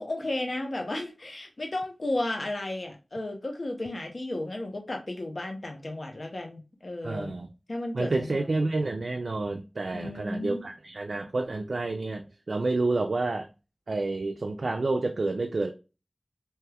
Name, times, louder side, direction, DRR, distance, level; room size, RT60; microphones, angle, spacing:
voice 1, 0.0-7.3 7.7-8.6 9.9-10.6, left 1 dB, 55° left, 3 dB, 0.7 m, -34 dB
voice 2, 7.0-7.5 7.9-13.5 13.9-15.7, right 2 dB, 70° right, 4 dB, 0.3 m, -29 dB
2.9 x 2.3 x 3.3 m, 0.30 s
wide cardioid pair, 65°, 0 cm